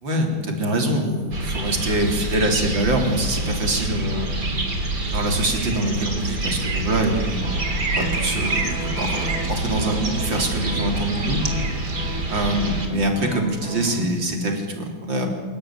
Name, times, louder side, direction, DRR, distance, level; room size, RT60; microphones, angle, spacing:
voice 1, 0.0-4.3 5.1-11.4 12.3-15.3, right 1 dB, 75° right, 2 dB, 4.5 m, -24 dB
sound 1, 1.3-14.1, right 2 dB, 60° right, 4.0 m, -26 dB
sound 2, 1.9-5.7 7.4-13.9, right 1 dB, 5° right, 4.7 m, -36 dB
27.5 x 18.5 x 9.3 m, 1.5 s
omnidirectional pair, 2.1 m